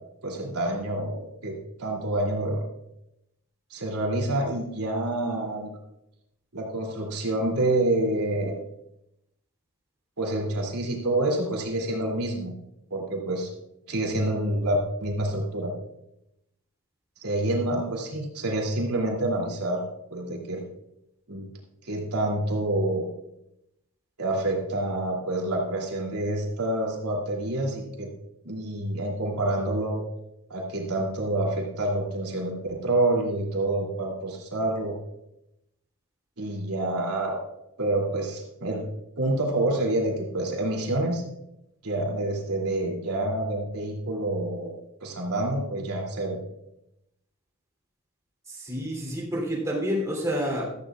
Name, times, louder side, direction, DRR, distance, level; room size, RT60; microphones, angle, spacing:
voice 1, 0.2-1.5 1.8-2.6 3.7-5.8 6.5-8.5 10.2-12.5 12.9-13.5 13.9-15.7 17.2-19.8 20.1-20.6 21.3-21.5 21.8-23.1 24.2-28.1 28.4-30.0 30.5-34.9 36.4-37.4 37.8-38.8 39.2-41.2 41.8-44.7 45.0-46.4, right 1 dB, 90° right, -1 dB, 3.0 m, -27 dB
voice 2, 48.5-50.6, equal, 15° right, -2 dB, 3.3 m, -29 dB
15.0 x 13.0 x 2.5 m, 0.86 s
head